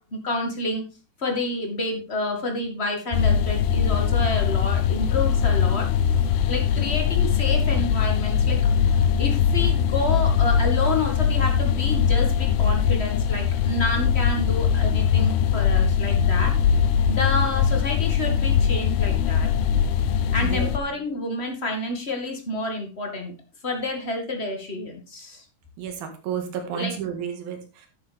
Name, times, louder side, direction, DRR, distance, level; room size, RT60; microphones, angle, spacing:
voice 1, 0.2-0.8 1.2-5.9 6.1-6.2 6.5-16.5 17.1-19.5 20.3-23.3 23.6-25.4 26.7-26.9, left 2 dB, 25° left, 2 dB, 1.5 m, -29 dB
sound 1, 3.1-20.8, left 7 dB, 80° left, 2.6 m, -21 dB
voice 2, 25.8-27.9, right 8 dB, 75° right, 5 dB, 3.6 m, -31 dB
11.5 x 9.3 x 3.5 m, 0.34 s
omnidirectional pair, 4.3 m